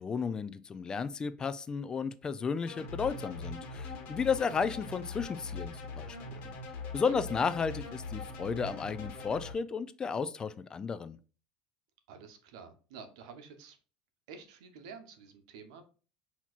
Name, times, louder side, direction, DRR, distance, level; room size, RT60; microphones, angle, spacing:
voice 1, 0.0-6.4 6.9-11.2, left 5 dB, 25° left, 14 dB, 0.3 m, -33 dB
sound 1, 2.7-9.5, left 3 dB, 60° left, 1.3 m, -42 dB
voice 2, 12.1-13.8 14.3-15.8, right 5 dB, 85° right, 7 dB, 0.8 m, -50 dB
5.8 x 2.9 x 2.4 m, 0.37 s
supercardioid pair, 115°, 3 cm